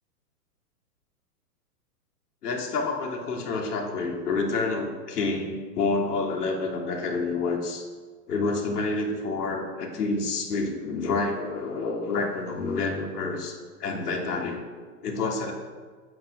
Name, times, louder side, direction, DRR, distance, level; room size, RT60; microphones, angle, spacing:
voice 1, 2.4-7.9 8.3-14.7 15.0-15.5, left 3 dB, 75° left, 0 dB, 2.9 m, -28 dB
9.6 x 7.7 x 6.1 m, 1.5 s
hypercardioid pair, 180°, 47 cm